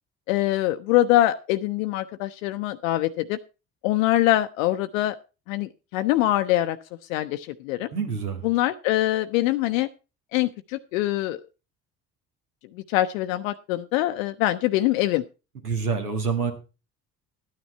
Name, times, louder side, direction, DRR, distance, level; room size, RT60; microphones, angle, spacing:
voice 1, 0.3-3.4 3.8-5.2 5.5-6.8 7.1-7.9 8.4-9.9 10.3-11.4 12.9-15.2, left 15 dB, 65° left, 9 dB, 0.6 m, -23 dB
voice 2, 7.9-8.4 15.6-16.5, right 5 dB, 85° right, 5 dB, 1.8 m, -26 dB
12.5 x 9.5 x 4.3 m, 0.31 s
figure-of-eight pair, 55°, 44 cm